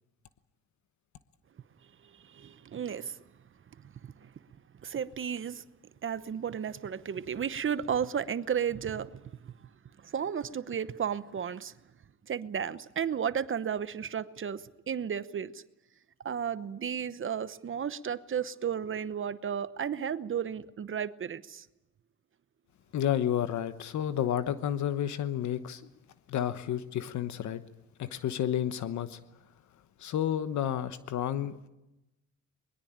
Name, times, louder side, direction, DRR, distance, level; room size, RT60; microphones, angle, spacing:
voice 1, 2.2-3.2 4.2-4.3 4.8-5.6 6.0-9.1 9.4-9.5 10.0-11.7 12.3-15.6 16.2-21.6, right 8 dB, 40° right, 0.9 m, -33 dB
voice 2, 22.9-25.8 26.3-27.6 28.0-29.2 30.0-31.7, left 10 dB, 70° left, 1.1 m, -31 dB
22.5 x 21.5 x 8.9 m
cardioid pair, 90°, 30 cm